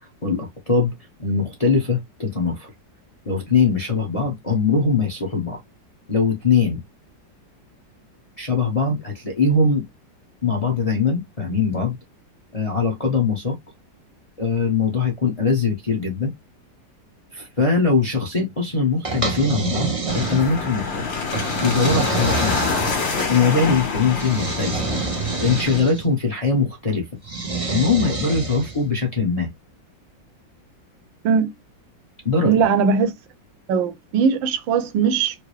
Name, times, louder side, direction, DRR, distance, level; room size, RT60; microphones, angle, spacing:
voice 1, 0.2-0.9 1.2-2.7 3.3-5.6 6.1-6.8 8.4-9.8 10.4-12.0 12.5-13.6 14.4-16.3 17.3-21.1 21.4-22.8 23.3-24.8 25.4-27.1 27.7-29.5 32.2-32.6, left 4 dB, 30° left, 0.7 m, -21 dB
sound 1, 19.0-20.7 21.3-23.3 24.2-26.0 27.2-28.8, right 4 dB, 65° right, 0.3 m, -27 dB
sound 2, 20.1-25.8, left 4 dB, 80° left, 2.0 m, -26 dB
voice 2, 32.4-33.1 33.7-35.4, right 6 dB, 80° right, 1.4 m, -19 dB
4.6 x 2.0 x 3.1 m
omnidirectional pair, 2.0 m